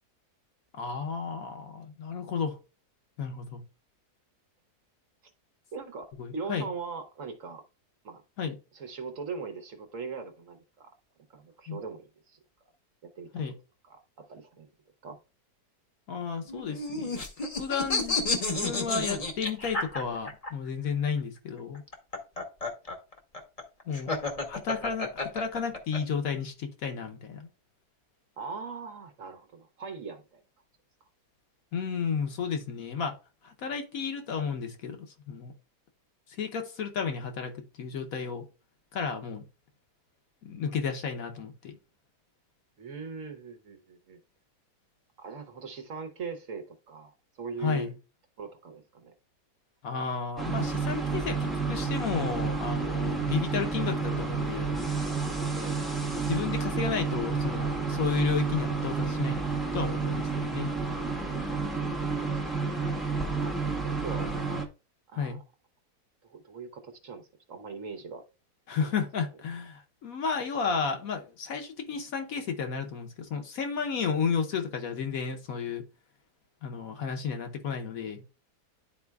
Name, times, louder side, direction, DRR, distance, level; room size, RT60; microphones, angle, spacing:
voice 1, 0.8-2.6 3.2-3.6 6.2-6.7 8.4-8.6 11.7-11.8 13.3-13.5 16.1-17.3 17.6-18.2 18.5-21.8 23.9-24.2 24.4-27.5 31.7-33.2 33.4-35.5 36.4-37.5 37.8-38.4 38.9-39.4 40.4-41.8 47.6-47.9 49.8-54.8 56.2-59.4 59.7-60.7 65.1-65.4 68.7-75.8 76.6-78.2, left 6 dB, 65° left, 1.2 m, -32 dB
voice 2, 5.7-7.6 8.0-8.2 8.7-10.9 11.3-12.4 13.0-13.4 13.9-14.7 15.0-15.2 28.4-30.4 42.8-44.2 45.2-47.9 48.4-49.1 55.6-55.8 63.4-64.6 65.1-65.4 66.2-68.2 68.8-68.9, right 5 dB, 60° right, 1.1 m, -40 dB
sound 1, 16.5-20.5 21.7-26.0, left 3 dB, 30° left, 0.8 m, -31 dB
sound 2, 50.4-64.7, right 4 dB, ahead, 0.6 m, -30 dB
11.0 x 4.2 x 2.3 m
omnidirectional pair, 1.7 m